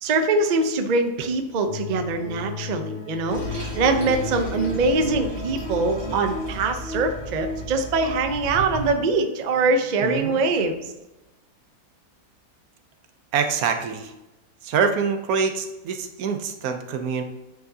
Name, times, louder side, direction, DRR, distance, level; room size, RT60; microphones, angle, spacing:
voice 1, 0.0-10.9, right 3 dB, 45° right, 6 dB, 0.5 m, -23 dB
sound 1, 1.7-8.2, left 3 dB, 80° left, 2.6 m, -35 dB
Toilet flush, 3.3-8.9, equal, 15° left, 1.6 m, -34 dB
voice 2, 10.0-10.4 13.3-14.1 14.6-17.2, right 6 dB, 80° right, 7 dB, 1.2 m, -25 dB
9.0 x 4.9 x 2.7 m, 1.0 s
omnidirectional pair, 1.5 m